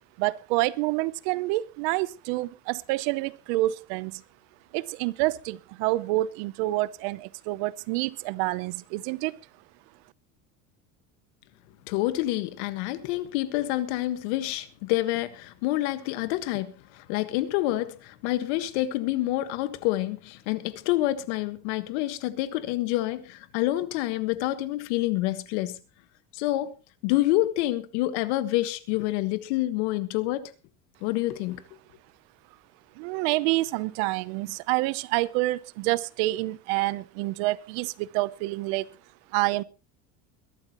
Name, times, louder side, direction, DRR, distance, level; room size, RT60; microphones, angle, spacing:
voice 1, 0.2-4.2 4.7-9.4 33.0-38.9 39.3-39.6, right 19 dB, 70° right, 0.8 m, -28 dB
voice 2, 11.9-25.8 26.3-26.7 27.0-30.5 31.0-31.6, left 16 dB, 85° left, 1.5 m, -27 dB
22.0 x 12.0 x 3.0 m
cardioid pair, 180°, 33 cm